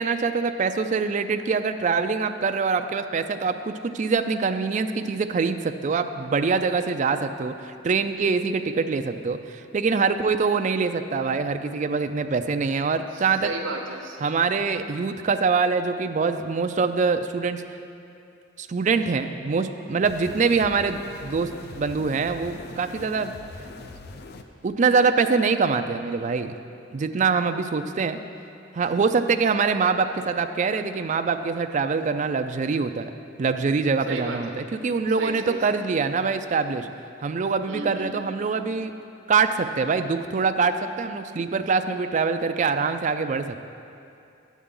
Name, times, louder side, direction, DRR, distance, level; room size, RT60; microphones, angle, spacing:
voice 1, 0.0-13.5 14.2-17.6 18.6-23.3 24.6-26.5 26.9-28.2 28.7-33.1 33.4-36.9 37.2-38.9 39.3-43.6, right 4 dB, 40° right, 8 dB, 0.4 m, -24 dB
voice 2, 13.1-14.2 34.1-34.6 35.2-35.8 37.7-38.3, right 3 dB, 85° right, 1 dB, 0.7 m, -33 dB
sound 1, 20.0-24.4, left 3 dB, 55° left, 0.5 m, -42 dB
10.5 x 8.2 x 3.7 m, 2.6 s
head